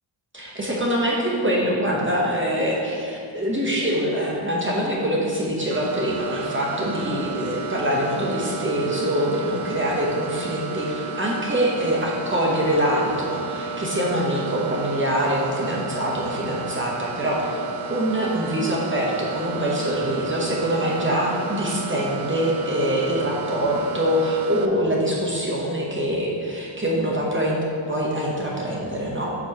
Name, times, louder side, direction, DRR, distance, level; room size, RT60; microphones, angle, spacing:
voice 1, 0.3-17.6 17.9-27.6 27.9-29.3, equal, 25° right, -4 dB, 1.0 m, -24 dB
sound 1, 5.7-24.7, right 5 dB, 90° right, 0.6 m, -33 dB
7.4 x 3.1 x 5.8 m, 2.4 s
wide cardioid pair, 100°, 48 cm